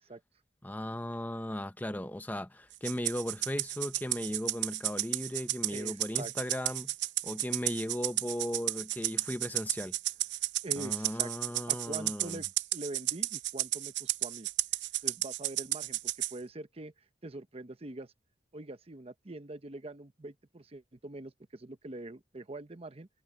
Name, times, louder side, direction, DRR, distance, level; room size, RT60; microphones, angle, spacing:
voice 1, 0.6-6.9 7.2-9.9 10.8-12.4, left 1 dB, 10° left, 0.8 m, -37 dB
Rattle (instrument), 2.8-16.3, right 15 dB, 80° right, 0.7 m, -33 dB
voice 2, 5.7-6.3 10.6-11.3 11.7-12.5 12.7-14.5 15.0-16.9 17.2-18.1 18.5-23.1, right 2 dB, 35° right, 0.9 m, -44 dB
head